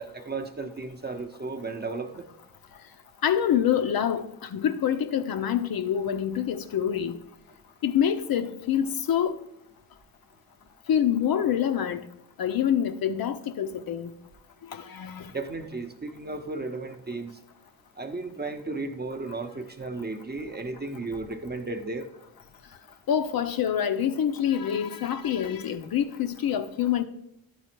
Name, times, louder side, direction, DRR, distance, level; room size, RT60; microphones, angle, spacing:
voice 1, 0.0-2.3 15.3-17.4 18.0-22.1, right 3 dB, 20° right, 0.8 m, -34 dB
voice 2, 3.2-4.3 4.5-7.2 7.8-9.3 10.9-12.0 12.4-14.1 14.7-15.2 23.1-27.0, left 9 dB, 50° left, 0.6 m, -26 dB
10.0 x 4.1 x 4.4 m
supercardioid pair, 50°, 47 cm